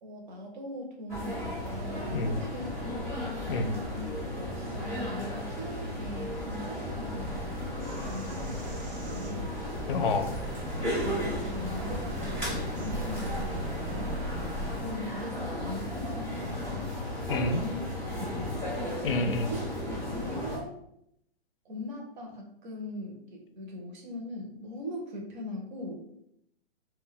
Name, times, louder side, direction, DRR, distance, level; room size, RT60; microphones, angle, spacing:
voice 1, 0.0-3.2 3.5-4.1 4.4-9.5 10.8-14.1 14.4-14.6 14.8-16.9 17.5-17.8 18.1-18.6 19.2-19.6 20.1-20.7 21.6-26.0, left 1 dB, 45° right, 1 dB, 0.7 m, -40 dB
sound 1, 1.1-20.6, left 1 dB, 15° right, 0.4 m, -35 dB
Bird vocalization bird call bird song, 7.2-14.8, right 1 dB, 70° right, 0.9 m, -38 dB
voice 2, 9.9-10.4 17.3-17.6 19.0-19.5, left 3 dB, 55° left, 7 dB, 0.5 m, -28 dB
2.2 x 2.2 x 3.6 m, 0.75 s
hypercardioid pair, 165°, 33 cm